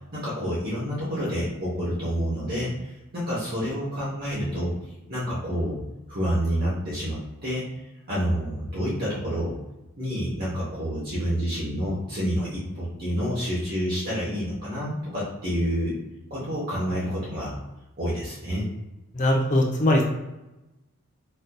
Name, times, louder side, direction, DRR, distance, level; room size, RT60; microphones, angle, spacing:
voice 1, 0.1-4.7 5.1-5.8 6.1-7.7 8.1-9.5 10.0-16.0 16.3-17.6 18.0-18.7, equal, 45° right, -8 dB, 0.8 m, -28 dB
voice 2, 19.1-20.0, left 1 dB, 35° left, 0 dB, 0.5 m, -21 dB
4.2 x 2.6 x 2.2 m, 1.0 s
head